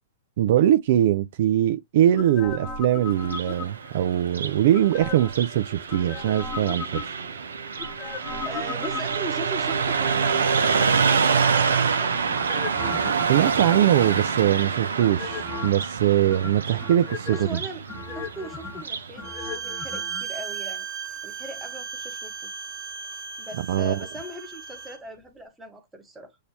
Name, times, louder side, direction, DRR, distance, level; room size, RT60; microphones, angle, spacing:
voice 1, 0.4-7.0 13.3-17.5 23.7-24.0, right 11 dB, 60° right, 0.5 m, -22 dB
sound 1, 2.2-4.0 4.7-5.4 5.9-7.3 7.8-9.5 12.3-14.4 15.0-15.9 16.3-17.5 17.9-20.2 20.5-20.6, left 5 dB, 20° left, 1.0 m, -37 dB
Car passing by, 3.1-19.1, right 5 dB, 90° right, 0.9 m, -26 dB
voice 2, 8.4-12.3 17.3-17.8 18.1-20.9 21.2-22.5 23.4-26.4, right 1 dB, 10° right, 1.3 m, -39 dB
Bowed string instrument, 19.2-25.0, right 6 dB, 40° right, 1.8 m, -36 dB
6.5 x 2.8 x 2.8 m
hypercardioid pair, 130°, 0 cm